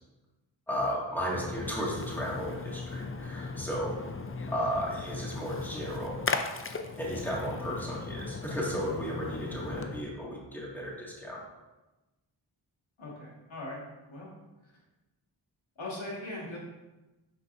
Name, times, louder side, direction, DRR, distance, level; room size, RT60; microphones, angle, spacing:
voice 1, 0.7-4.0 4.5-6.1 7.0-11.4, equal, 5° left, -4 dB, 1.9 m, -34 dB
Splash splatter, 1.3-10.0, left 4 dB, 30° left, 0.5 m, -37 dB
voice 2, 13.0-13.8 14.1-14.3 14.6-14.7 15.8-16.6, left 1 dB, 75° left, -4 dB, 1.8 m, -40 dB
9.7 x 4.0 x 2.6 m, 1.1 s
cardioid pair, 45°, 47 cm